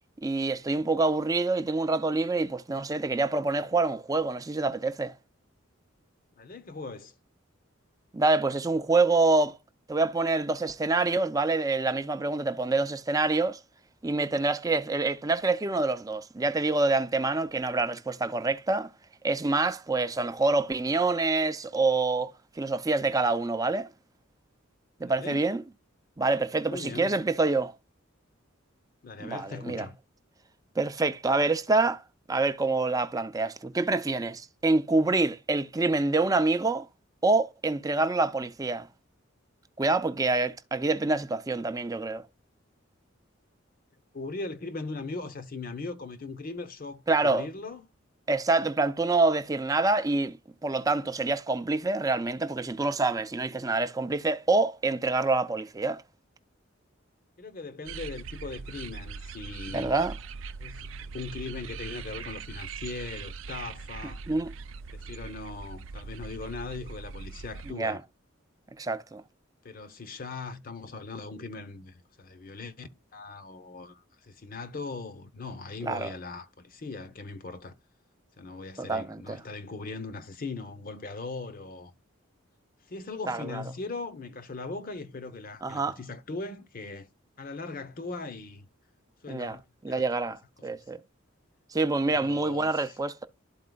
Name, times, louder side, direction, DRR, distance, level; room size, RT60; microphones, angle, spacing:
voice 1, 0.2-5.1 8.1-9.6 9.9-13.6 14.0-18.9 19.2-22.3 22.6-23.9 25.0-25.6 26.2-27.7 29.2-29.9 30.8-32.0 32.3-36.9 37.2-38.9 39.8-42.2 47.1-47.5 48.3-50.4 50.6-56.0 59.7-60.1 64.3-64.5 67.7-68.0 68.8-69.2 75.8-76.1 78.8-79.4 83.3-83.6 85.6-86.0 89.3-89.6 89.8-91.0 91.7-93.2, right 3 dB, 20° right, 0.5 m, -26 dB
voice 2, 6.4-7.1 25.0-25.5 26.7-27.2 29.0-30.0 44.1-47.8 57.4-59.9 60.6-64.2 64.9-68.0 69.6-77.7 78.4-81.9 82.9-87.1 87.4-88.7 89.2-89.6 89.9-90.0 92.1-93.0, left 3 dB, 45° left, 0.8 m, -39 dB
sound 1, 57.9-67.7, right 5 dB, 75° right, 0.4 m, -41 dB
12.0 x 4.3 x 2.3 m
head